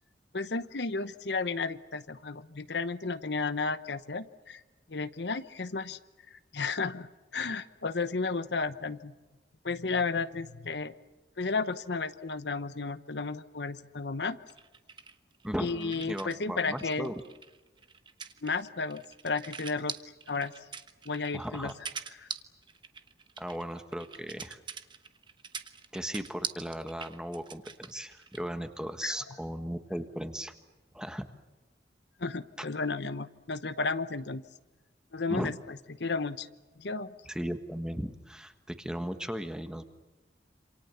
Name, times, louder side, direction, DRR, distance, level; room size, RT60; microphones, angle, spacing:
voice 1, 0.3-4.6 4.9-6.0 6.3-9.1 9.6-11.0 11.4-14.4 15.6-17.1 18.4-20.0 20.3-20.5 21.0-21.7 22.1-22.3 29.0-29.4 32.2-34.4 35.1-36.5 36.8-37.1, left 4 dB, 70° left, 13 dB, 0.9 m, -33 dB
sound 1, 14.5-16.4 16.7-28.5, right 6 dB, 25° right, 1.1 m, -43 dB
voice 2, 15.4-17.1 21.3-21.7 23.4-24.6 25.9-30.5 30.9-31.2 32.6-32.7 35.3-35.6 37.3-39.8, equal, 5° right, 8 dB, 1.5 m, -37 dB
27.5 x 27.5 x 7.0 m, 1.2 s
head